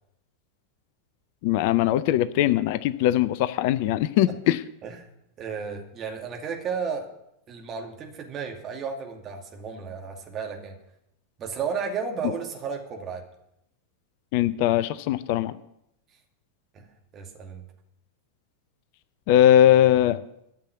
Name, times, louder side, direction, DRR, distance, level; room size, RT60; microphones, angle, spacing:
voice 1, 1.4-4.6 14.3-15.5 19.3-20.2, left 12 dB, 45° left, 15 dB, 0.5 m, -20 dB
voice 2, 5.4-7.1 7.5-10.8 11.4-13.2 16.7-16.9 17.1-17.7, right 6 dB, 30° right, 2 dB, 2.4 m, -33 dB
13.0 x 7.3 x 8.4 m, 0.80 s
figure-of-eight pair, 90°, 0 cm